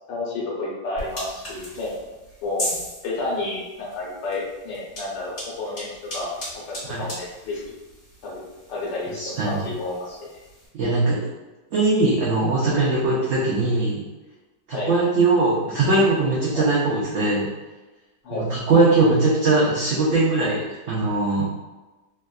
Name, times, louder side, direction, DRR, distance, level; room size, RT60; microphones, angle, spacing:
voice 1, 0.1-1.9 2.4-2.6 3.0-6.3 6.7-7.6 8.2-8.4 8.7-10.2 14.7-14.9 16.5-16.7 18.2-18.4, left 2 dB, 85° left, -4 dB, 1.5 m, -30 dB
sound 1, 1.0-10.7, equal, 55° left, 1.9 m, -38 dB
voice 2, 9.2-9.6 10.7-11.2 11.7-14.0 14.7-17.5 18.3-21.5, right 2 dB, 65° right, -7 dB, 0.8 m, -20 dB
3.4 x 2.2 x 2.3 m, 1.2 s
omnidirectional pair, 1.9 m